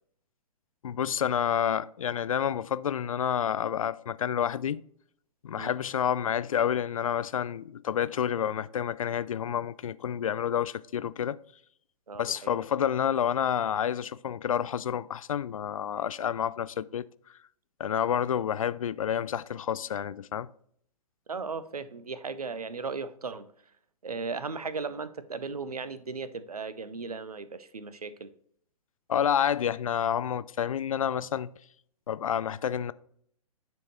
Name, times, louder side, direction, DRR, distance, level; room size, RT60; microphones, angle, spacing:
voice 1, 0.8-4.8 5.4-11.4 12.2-17.1 17.8-20.5 29.1-31.5 32.1-32.9, left 9 dB, 65° left, 0.4 m, -29 dB
voice 2, 12.1-12.6 21.3-23.4 24.0-28.3, right 4 dB, 80° right, 0.7 m, -36 dB
10.0 x 4.5 x 3.0 m
figure-of-eight pair, 115°, 19 cm